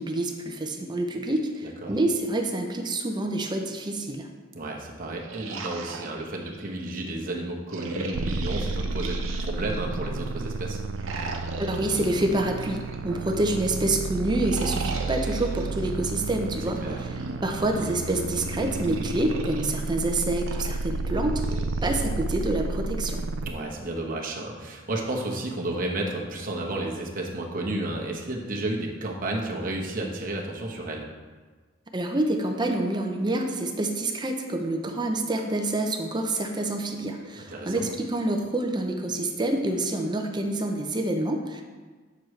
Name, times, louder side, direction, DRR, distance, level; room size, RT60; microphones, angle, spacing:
voice 1, 0.0-4.3 11.7-16.8 17.4-23.2 31.9-41.6, right 1 dB, 20° right, 3 dB, 0.6 m, -27 dB
voice 2, 1.6-2.0 4.5-10.8 16.8-17.1 23.4-31.1 37.5-37.8, right 1 dB, 45° right, -1 dB, 1.1 m, -32 dB
sound 1, 4.9-6.9 7.7-10.1 10.9-13.5 14.3-15.9 16.9-19.7 20.3-22.0, right 3 dB, 90° right, 0.8 m, -38 dB
sound 2, 8.1-23.5, right 3 dB, 70° right, 0.3 m, -32 dB
7.8 x 6.8 x 3.2 m, 1.4 s
head